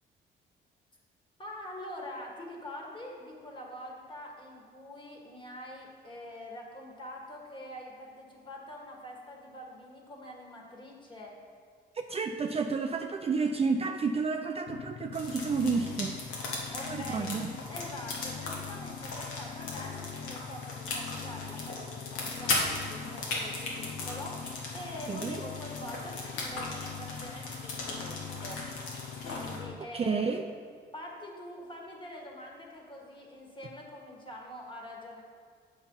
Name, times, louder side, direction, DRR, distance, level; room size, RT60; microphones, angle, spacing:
voice 1, 1.4-11.3 16.7-17.3 17.7-30.4 30.9-35.2, left 1 dB, 25° left, -1 dB, 1.7 m, -45 dB
voice 2, 11.9-16.2 16.8-17.5 25.1-25.4 29.9-30.4, right 4 dB, 30° right, 5 dB, 0.4 m, -30 dB
sound 1, 14.7-29.7, left 7 dB, 50° left, 0.4 m, -43 dB
sound 2, 15.1-29.6, left 2 dB, 85° left, 1.5 m, -38 dB
7.0 x 5.4 x 5.5 m, 2.1 s
cardioid pair, 90°, 20 cm